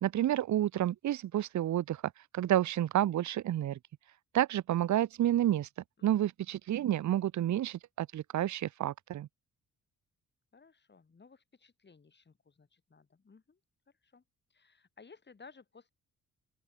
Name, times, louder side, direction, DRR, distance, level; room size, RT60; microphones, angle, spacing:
voice 1, 0.0-2.0 2.3-3.8 4.3-5.7 6.0-9.3, right 12 dB, 60° right, 0.7 m, -30 dB
voice 2, 6.0-6.3 10.5-13.6 14.0-14.2 14.5-15.9, left 4 dB, 35° left, 3.6 m, -58 dB
open air
cardioid pair, 85°, 33 cm